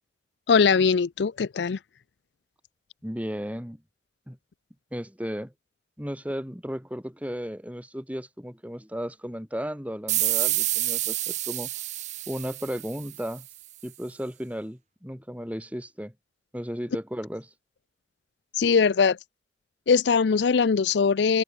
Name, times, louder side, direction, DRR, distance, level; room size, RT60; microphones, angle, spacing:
voice 1, 0.5-1.8 18.5-19.2 19.9-21.4, left 5 dB, 70° left, 0.5 m, -21 dB
voice 2, 3.0-3.8 4.3-4.4 4.9-5.5 6.0-11.7 12.3-13.5 13.8-16.1 16.5-17.5, equal, 10° right, 5.8 m, -34 dB
sound 1, 10.1-13.4, right 15 dB, 40° right, 0.6 m, -28 dB
open air
head